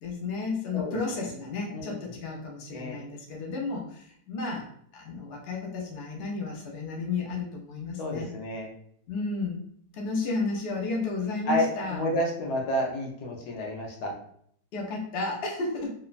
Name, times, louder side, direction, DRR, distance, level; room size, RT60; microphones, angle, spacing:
voice 1, 0.0-4.6 4.9-8.3 9.1-9.6 9.9-12.0 14.7-15.9, left 3 dB, 60° left, -1 dB, 0.6 m, -32 dB
voice 2, 0.7-1.3 1.7-1.9 2.7-3.0 8.0-8.7 11.5-14.1, left 1 dB, 75° left, 0 dB, 1.2 m, -30 dB
3.0 x 2.1 x 2.4 m, 0.66 s
omnidirectional pair, 1.7 m